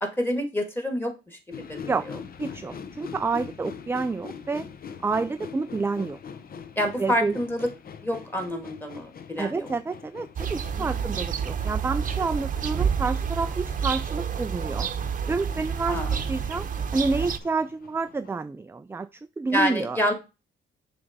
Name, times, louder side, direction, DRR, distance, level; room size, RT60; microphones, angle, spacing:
voice 1, 0.0-1.4 1.7-1.8 2.1-2.2 2.7-2.8 6.8-7.7 8.0-9.7 10.8-11.0 15.9-16.3 19.5-20.1, equal, 10° left, 5 dB, 2.1 m, -28 dB
sound 1, 1.5-18.3, left 6 dB, 50° left, 0.8 m, -44 dB
voice 2, 2.4-4.7 5.0-6.2 7.0-7.4 9.4-14.9 15.3-16.0 16.3-16.7 16.9-20.0, right 4 dB, 10° right, 11 dB, 0.3 m, -29 dB
sound 2, 10.4-17.4, right 7 dB, 40° right, 0.8 m, -29 dB
7.0 x 3.4 x 5.1 m, 0.27 s
cardioid pair, 90°, 20 cm